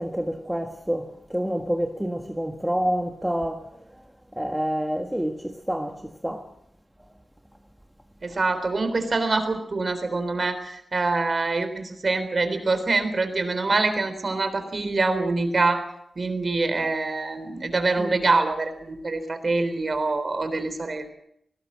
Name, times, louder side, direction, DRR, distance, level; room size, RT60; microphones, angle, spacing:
voice 1, 0.0-3.6 4.3-6.0 6.2-6.5 18.0-18.1, equal, 5° right, 1.5 m, -28 dB
voice 2, 8.2-15.8 16.2-21.1, right 3 dB, 45° right, 3.7 m, -25 dB
21.5 x 19.0 x 7.5 m
wide cardioid pair, 135°, 0 cm